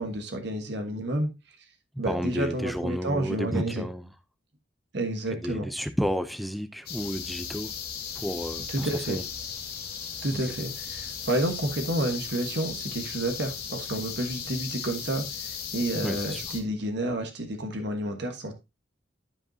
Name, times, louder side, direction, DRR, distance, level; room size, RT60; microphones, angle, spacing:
voice 1, 0.0-1.6 2.0-3.8 4.9-5.7 8.7-9.2 10.2-18.5, right 1 dB, 65° right, 1.4 m, -30 dB
voice 2, 2.0-4.1 5.3-7.7 8.2-9.2 16.0-16.4, equal, ahead, 0.5 m, -31 dB
sound 1, 6.9-16.6, left 7 dB, 60° left, 2.0 m, -36 dB
12.5 x 5.2 x 2.7 m
head